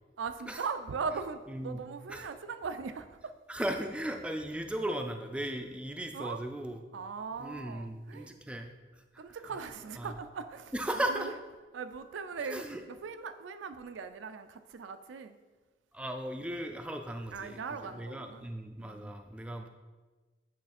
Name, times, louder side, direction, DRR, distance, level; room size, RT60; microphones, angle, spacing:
voice 1, 0.2-3.3 6.1-6.4 6.9-8.3 9.2-10.7 11.2-11.3 11.7-15.4 17.3-18.5 18.8-19.1, right 5 dB, 85° right, 9 dB, 0.4 m, -39 dB
voice 2, 1.5-1.8 2.1-2.3 3.5-6.8 7.4-9.2 10.0-10.1 10.7-11.3 12.4-12.8 15.9-19.7, right 1 dB, 5° right, 5 dB, 0.3 m, -37 dB
8.5 x 3.2 x 4.2 m, 1.3 s
head